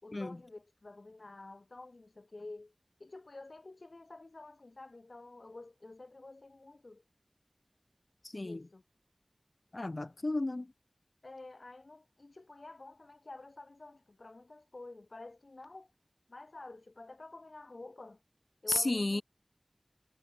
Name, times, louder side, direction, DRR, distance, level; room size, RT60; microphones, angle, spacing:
voice 1, 0.0-2.7 3.0-7.0 8.3-8.8 11.2-15.9 16.3-18.2 18.6-19.2, left 2 dB, 90° left, 3.5 m, -50 dB
voice 2, 8.2-8.6 9.7-10.7 18.7-19.2, left 2 dB, 65° left, 3.0 m, -33 dB
wide cardioid pair, 45°, 0 cm